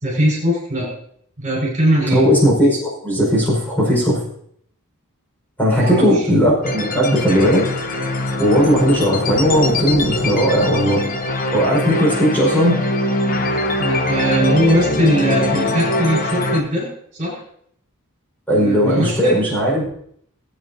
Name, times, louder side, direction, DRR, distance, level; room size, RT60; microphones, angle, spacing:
voice 1, 0.0-0.9 1.4-2.2 5.8-6.3 13.8-17.4 18.5-19.4, equal, 35° right, -4 dB, 5.5 m, -20 dB
voice 2, 2.1-4.2 5.6-7.6 8.4-11.0 11.5-12.7 18.5-19.9, equal, 10° left, -4 dB, 5.2 m, -17 dB
sound 1, 6.6-16.6, left 2 dB, 40° left, 1.1 m, -22 dB
19.5 x 8.7 x 2.8 m, 0.66 s
head